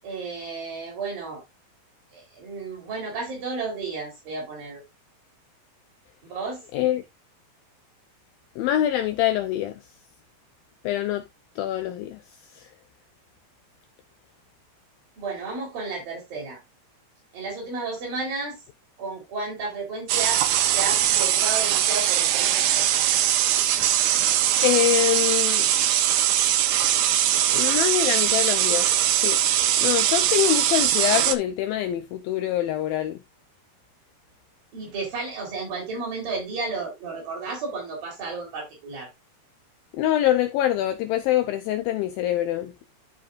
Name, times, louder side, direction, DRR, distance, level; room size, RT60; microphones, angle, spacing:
voice 1, 0.0-1.4 2.1-4.8 6.2-6.6 15.2-16.6 17.3-18.6 19.0-20.4 20.7-23.1 34.7-39.1, right 3 dB, 60° right, 5.1 m, -32 dB
voice 2, 6.7-7.0 8.6-9.8 10.8-11.2 11.6-12.2 12.5-12.7 24.6-25.7 27.5-29.4 29.8-33.2 39.9-42.9, left 12 dB, 80° left, 2.1 m, -24 dB
sound 1, 20.1-31.3, right 11 dB, 85° right, 1.8 m, -21 dB
13.0 x 5.1 x 2.5 m
omnidirectional pair, 4.7 m